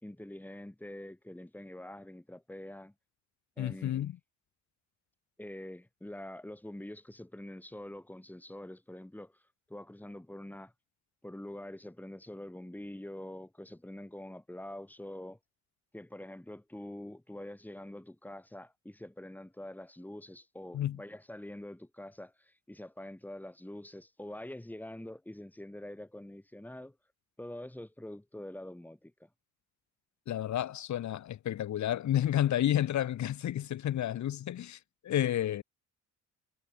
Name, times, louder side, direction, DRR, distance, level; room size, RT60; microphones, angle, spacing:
voice 1, 0.0-2.9 3.6-4.1 5.4-9.4 9.7-10.7 11.2-15.4 15.9-27.0 27.4-29.3, left 1 dB, 5° left, 4.0 m, -45 dB
voice 2, 3.6-4.1 20.7-21.0 30.3-35.6, left 11 dB, 70° left, 2.1 m, -31 dB
cardioid pair, 90°, 30 cm